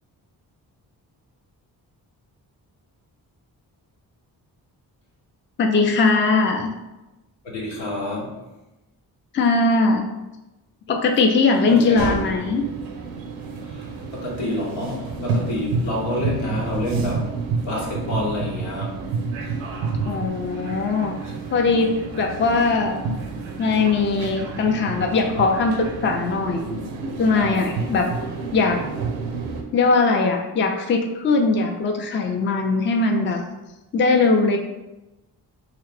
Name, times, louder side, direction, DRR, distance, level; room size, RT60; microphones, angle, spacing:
voice 1, 5.6-6.7 9.3-10.1 10.9-12.7 20.0-21.2 21.5-23.0 23.6-26.8 27.2-28.1 28.5-28.9 29.7-33.4 33.9-34.6, left 3 dB, 25° left, 4 dB, 0.4 m, -20 dB
voice 2, 7.4-8.4 11.7-12.3 13.6-17.3 17.6-19.0, left 1 dB, 85° left, -3 dB, 0.9 m, -28 dB
sound 1, 12.0-29.6, right 4 dB, 90° right, 0.5 m, -30 dB
2.8 x 2.4 x 3.2 m, 1.0 s
supercardioid pair, 40°, 46 cm